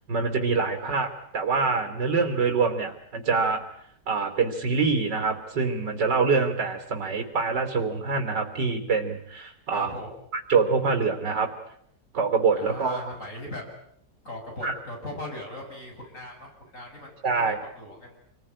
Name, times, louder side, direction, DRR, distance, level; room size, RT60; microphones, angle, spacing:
voice 1, 0.1-3.6 4.1-9.9 10.5-11.5 12.1-13.0 14.6-14.7 17.2-17.6, right 4 dB, 80° right, 5 dB, 3.7 m, -25 dB
voice 2, 9.7-10.1 12.5-13.6 14.2-18.2, left 1 dB, 45° left, 1 dB, 8.0 m, -39 dB
28.5 x 21.0 x 9.8 m, 0.72 s
omnidirectional pair, 1.9 m